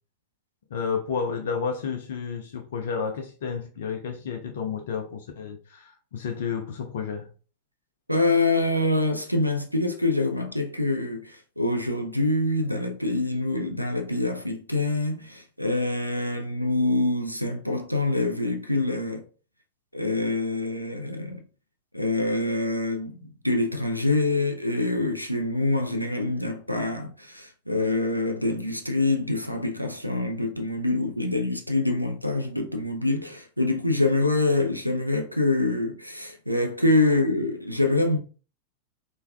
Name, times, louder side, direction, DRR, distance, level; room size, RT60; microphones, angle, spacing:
voice 1, 0.7-7.3, left 6 dB, 60° left, 0.4 m, -31 dB
voice 2, 8.1-19.2 19.9-21.4 21.9-38.2, left 2 dB, 90° right, 0.3 m, -25 dB
3.2 x 2.2 x 2.2 m
figure-of-eight pair, 90°, 0 cm